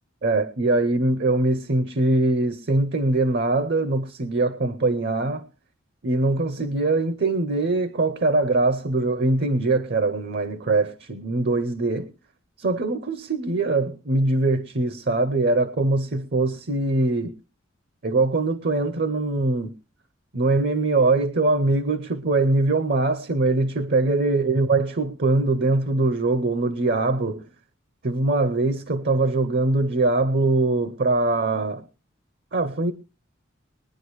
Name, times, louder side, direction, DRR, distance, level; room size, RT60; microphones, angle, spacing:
voice 1, 0.2-5.5 6.0-12.1 12.6-17.4 18.0-19.7 20.3-27.5 28.0-31.8 32.5-32.9, right 2 dB, 55° right, 0.7 m, -22 dB
21.0 x 10.0 x 3.1 m
head